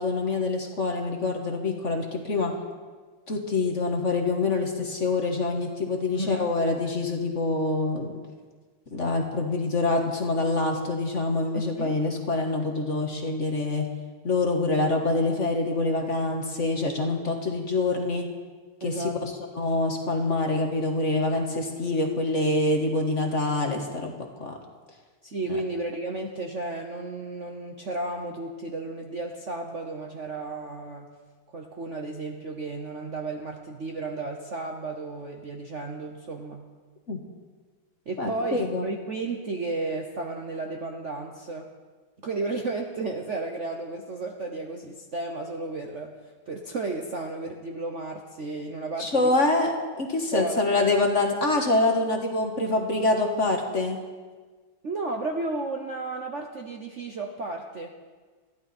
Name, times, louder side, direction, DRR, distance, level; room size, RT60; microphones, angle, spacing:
voice 1, 0.0-2.5 3.3-8.1 8.9-13.9 14.2-18.3 18.8-24.1 24.4-24.6 25.5-25.6 37.1-37.2 38.2-38.8 49.0-54.0, left 2 dB, 35° left, 2 dB, 1.7 m, -25 dB
voice 2, 6.1-6.5 11.8-11.9 18.8-19.2 25.2-31.1 31.5-36.6 38.1-41.7 42.2-46.1 46.5-49.3 50.3-50.6 54.8-58.1, right 2 dB, 45° right, 2 dB, 1.0 m, -33 dB
21.5 x 14.5 x 4.3 m, 1.4 s
omnidirectional pair, 2.3 m